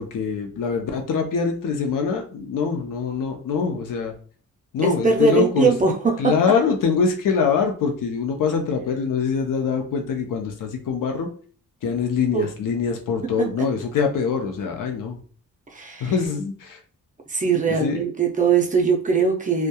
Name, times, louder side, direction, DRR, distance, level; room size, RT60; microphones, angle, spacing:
voice 1, 0.0-4.1 4.7-5.7 6.2-11.3 11.8-15.2 16.0-16.8 17.7-18.0, left 5 dB, 85° left, 3 dB, 0.6 m, -24 dB
voice 2, 4.8-6.3 12.3-12.5 13.4-13.5 15.7-16.1 17.3-19.7, right 5 dB, 25° right, 2 dB, 0.5 m, -21 dB
2.7 x 2.2 x 2.2 m, 0.42 s
cardioid pair, 105°, 32 cm